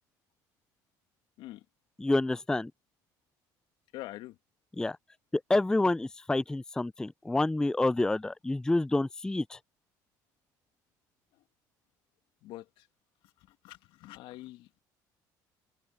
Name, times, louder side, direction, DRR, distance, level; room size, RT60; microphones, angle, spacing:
voice 1, 2.0-2.7 4.8-5.0 5.5-9.6, left 2 dB, 10° left, 0.4 m, -28 dB
voice 2, 3.9-4.4 12.4-12.8 13.6-14.8, left 16 dB, 75° left, 2.3 m, -45 dB
open air
supercardioid pair, 80°, 9 cm